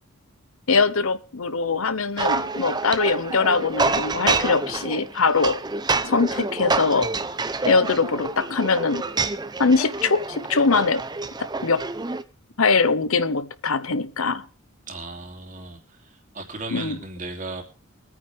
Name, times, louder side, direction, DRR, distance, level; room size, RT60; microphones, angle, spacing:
voice 1, 0.7-5.6 6.0-7.1 7.6-9.0 9.6-11.0 11.6-11.8 12.6-14.4 16.7-17.0, left 4 dB, 75° left, 13 dB, 1.0 m, -22 dB
sound 1, 2.2-12.2, right 3 dB, 20° right, 0.7 m, -27 dB
voice 2, 14.9-17.6, right 3 dB, 35° right, 3 dB, 2.7 m, -36 dB
24.0 x 9.4 x 3.4 m, 0.39 s
head